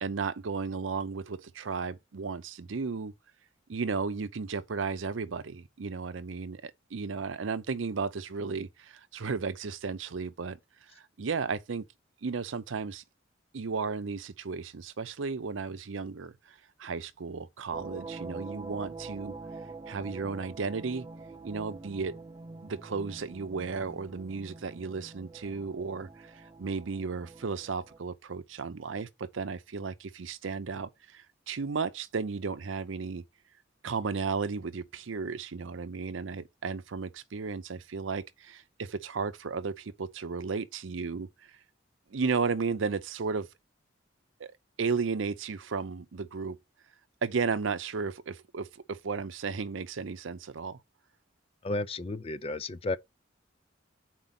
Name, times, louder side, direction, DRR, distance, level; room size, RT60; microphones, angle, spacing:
voice 1, 0.0-3.1 3.7-10.6 10.9-11.9 12.2-13.0 13.5-19.4 19.9-21.1 21.4-22.2 22.6-33.2 33.8-41.5 42.1-43.5 44.4-46.6 47.2-50.8, right 4 dB, 90° right, 0.6 m, -34 dB
sound 1, 17.7-28.0, right 3 dB, 25° right, 0.6 m, -45 dB
voice 2, 51.6-53.0, left 2 dB, 30° left, 0.4 m, -32 dB
5.2 x 4.5 x 5.8 m
head